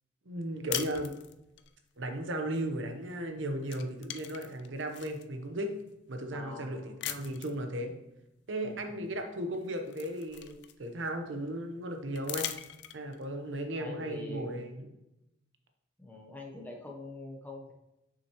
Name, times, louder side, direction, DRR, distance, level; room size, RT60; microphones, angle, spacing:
voice 1, 0.3-1.2 2.0-5.7 6.1-7.9 8.5-12.5 12.9-14.9, right 1 dB, 80° right, 5 dB, 0.9 m, -36 dB
sound 1, 0.7-1.7 3.1-3.3 3.6-5.2 5.9-6.0 7.0-7.6 9.0-9.1 9.5-11.1 12.1-13.2, left 11 dB, 60° left, 0.4 m, -40 dB
voice 2, 6.3-7.0 8.6-9.0 13.8-14.7 16.0-17.7, left 2 dB, 10° left, -1 dB, 0.8 m, -44 dB
6.7 x 5.7 x 3.0 m, 0.89 s
head